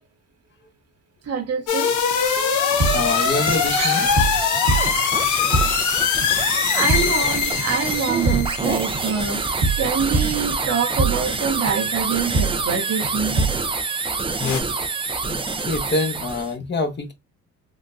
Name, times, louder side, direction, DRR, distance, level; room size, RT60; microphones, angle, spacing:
voice 1, 1.3-1.9 2.7-3.0 3.7-4.5 6.7-9.4 9.8-13.4, right 6 dB, 55° right, 0.8 m, -25 dB
sound 1, 1.7-9.5 14.4-14.6, left 7 dB, 75° left, 0.7 m, -22 dB
sound 2, 1.9-16.5, right 4 dB, 20° right, 0.5 m, -27 dB
sound 3, 2.8-3.7 4.0-5.9 6.2-6.5 6.8-7.3 7.6-11.4 11.7-12.0 12.3-12.8 13.0-13.7, right 3 dB, 75° right, 1.2 m, -25 dB
voice 2, 2.9-4.1 6.6-6.9 15.3-17.1, left 2 dB, 35° left, 1.0 m, -26 dB
3.8 x 2.1 x 2.5 m
cardioid pair, 90°, 30 cm